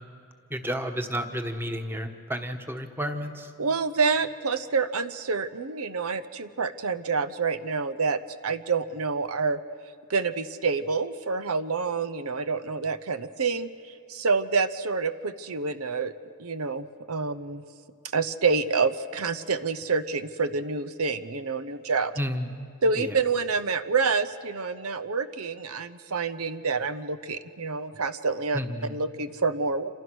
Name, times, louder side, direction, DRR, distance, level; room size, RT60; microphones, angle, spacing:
voice 1, 0.5-3.5 22.2-22.5 23.0-23.1 28.5-28.9, equal, 10° right, 6 dB, 1.3 m, -31 dB
voice 2, 3.6-9.6 10.1-13.7 14.1-16.1 16.4-17.6 18.1-22.1 22.8-28.6 28.9-29.9, right 4 dB, 80° right, 13 dB, 0.9 m, -27 dB
28.0 x 27.0 x 6.3 m, 2.4 s
head